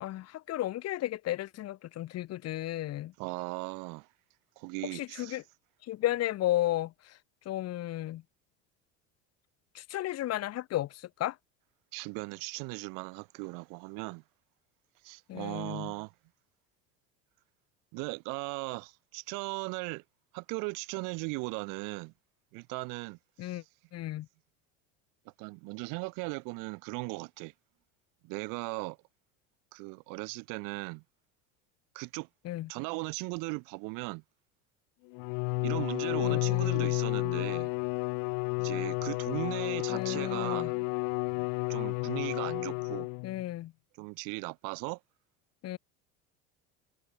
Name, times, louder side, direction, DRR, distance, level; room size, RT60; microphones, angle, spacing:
voice 1, 0.0-3.1 4.9-5.4 5.9-7.1 7.4-8.2 9.7-11.3 15.3-15.9 23.4-23.6 23.9-24.3 32.4-32.7 36.2-36.9 39.9-40.7 43.2-43.7 45.6-45.8, left 14 dB, 50° left, 1.4 m, -34 dB
voice 2, 3.2-4.1 4.6-5.4 11.9-14.2 15.0-16.1 17.9-20.0 20.3-22.1 22.5-23.6 25.2-27.5 28.2-29.0 29.7-31.0 31.9-32.3 32.7-34.2 35.6-37.7 38.6-40.9 41.7-43.1 44.0-45.0, right 32 dB, 70° right, 2.9 m, -38 dB
Bowed string instrument, 35.1-43.4, left 37 dB, 70° left, 1.0 m, -31 dB
supercardioid pair, 105°, 33 cm